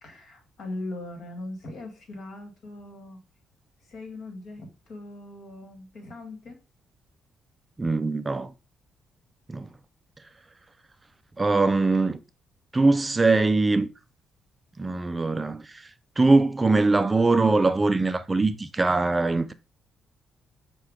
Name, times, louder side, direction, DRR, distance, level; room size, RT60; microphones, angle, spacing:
voice 1, 0.0-3.2 3.8-6.6, left 2 dB, 65° left, 1.5 m, -40 dB
voice 2, 7.8-8.5 9.5-9.7 11.4-12.2 12.7-13.9 14.8-19.5, right 3 dB, 20° right, 0.3 m, -22 dB
5.6 x 2.2 x 3.5 m
cardioid pair, 90°, 0 cm